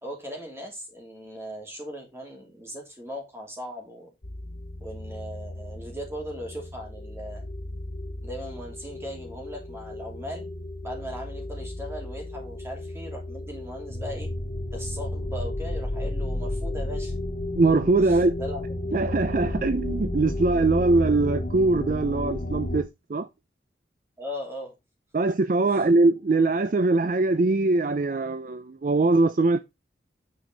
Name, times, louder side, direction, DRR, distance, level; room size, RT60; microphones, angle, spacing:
voice 1, 0.0-4.1 4.8-7.5 8.2-10.5 10.8-14.3 14.7-17.1 18.0-18.8 24.2-24.7 25.6-25.8, equal, 15° right, 2.8 m, -38 dB
sound 1, 4.2-22.8, left 1 dB, 55° left, 1.1 m, -33 dB
voice 2, 17.6-18.4 18.9-23.3 25.1-29.6, right 3 dB, 45° right, 0.4 m, -22 dB
9.3 x 5.0 x 3.9 m
head